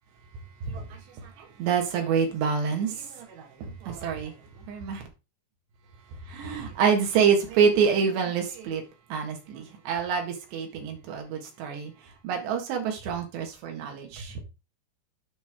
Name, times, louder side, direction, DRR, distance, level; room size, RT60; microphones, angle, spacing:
voice 1, 0.6-5.0 6.2-8.8 9.1-11.9 12.2-14.4, right 6 dB, 80° right, 3.9 m, -27 dB
9.6 x 5.7 x 3.7 m
omnidirectional pair, 4.9 m